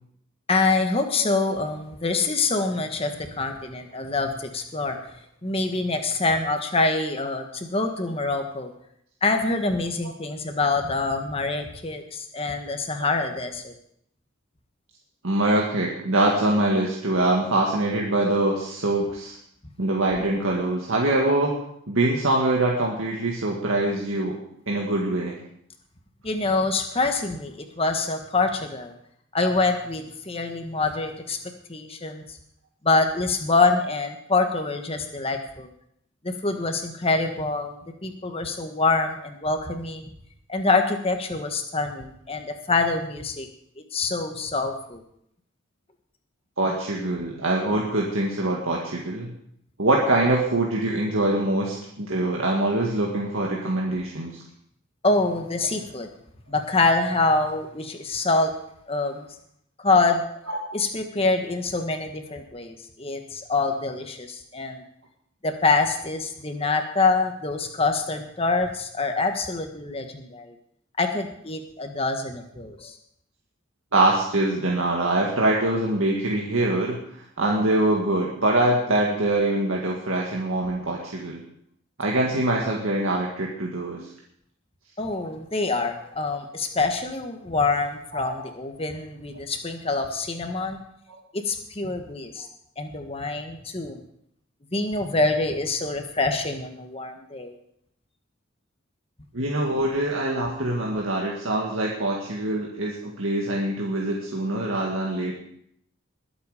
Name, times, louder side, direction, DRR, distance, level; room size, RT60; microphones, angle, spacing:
voice 1, 0.5-5.0 5.4-8.7 9.2-13.7 26.2-28.9 29.3-31.4 31.7-32.2 32.8-35.7 36.2-37.8 38.0-40.1 40.5-43.5 43.9-45.0 55.0-56.1 56.5-58.5 58.9-59.3 59.8-60.2 60.7-64.8 65.4-70.5 71.0-72.9 85.0-90.8 91.3-92.4 92.8-94.0 94.7-97.5, left 3 dB, 30° left, 5 dB, 1.5 m, -25 dB
voice 2, 15.2-19.4 19.8-21.6 21.9-24.4 24.7-25.3 46.6-49.3 49.8-54.4 60.5-60.6 73.9-77.0 77.4-81.4 82.0-84.1 88.1-88.4 91.1-91.2 99.3-105.3, right 2 dB, 80° right, -2 dB, 1.9 m, -24 dB
21.0 x 8.1 x 5.1 m, 0.72 s
head